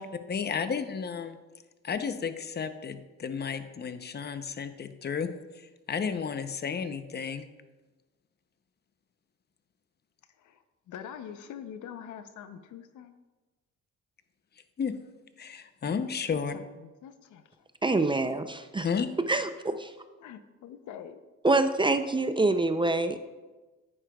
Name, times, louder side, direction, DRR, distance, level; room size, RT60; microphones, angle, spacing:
voice 1, 0.3-1.4 1.8-5.3 5.9-7.4 14.8-15.0 15.4-16.5 18.8-19.1, left 6 dB, 35° left, 10 dB, 0.7 m, -32 dB
voice 2, 10.4-13.1 16.3-17.7 20.2-21.2, left 9 dB, 75° left, 10 dB, 0.7 m, -45 dB
voice 3, 17.8-18.9 19.3-19.9 21.4-23.2, right 2 dB, 15° right, 9 dB, 0.5 m, -26 dB
9.8 x 9.5 x 2.3 m, 1.2 s
cardioid pair, 90°, 30 cm